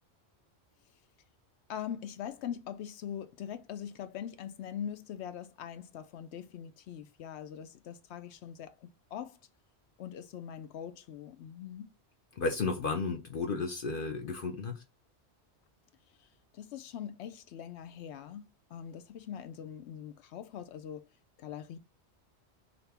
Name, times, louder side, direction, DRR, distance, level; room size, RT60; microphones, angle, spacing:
voice 1, 1.7-9.4 10.0-11.9 16.2-16.3 16.5-21.0 21.4-21.8, left 9 dB, 90° left, 0.9 m, -42 dB
voice 2, 12.3-14.8, left 4 dB, 55° left, 0.8 m, -33 dB
4.2 x 2.7 x 3.3 m
omnidirectional pair, 1.1 m